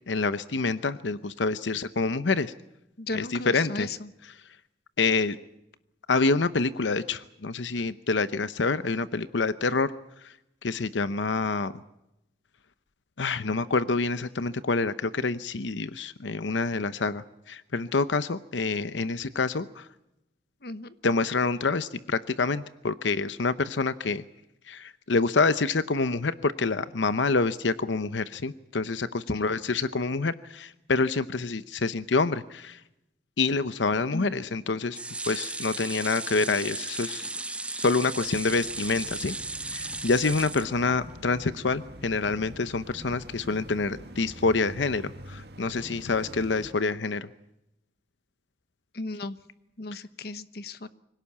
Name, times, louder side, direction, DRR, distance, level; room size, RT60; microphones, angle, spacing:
voice 1, 0.1-2.5 3.1-3.9 5.0-5.4 6.1-9.9 10.2-10.3 10.6-11.7 13.2-19.9 21.0-24.2 24.7-32.8 33.4-35.0 35.2-37.3 37.7-39.3 39.7-47.3, left 3 dB, 85° left, 13 dB, 0.8 m, -27 dB
voice 2, 3.0-4.1 20.6-20.9 29.3-29.6 34.1-34.4 48.9-49.4 49.8-50.9, left 2 dB, 55° left, 13 dB, 1.1 m, -35 dB
sound 1, 34.9-41.2 41.7-41.8 42.1-42.2, right 2 dB, 5° right, 0.8 m, -35 dB
sound 2, 38.1-46.7, right 1 dB, 60° right, 1.8 m, -45 dB
25.5 x 17.5 x 8.5 m, 0.89 s
head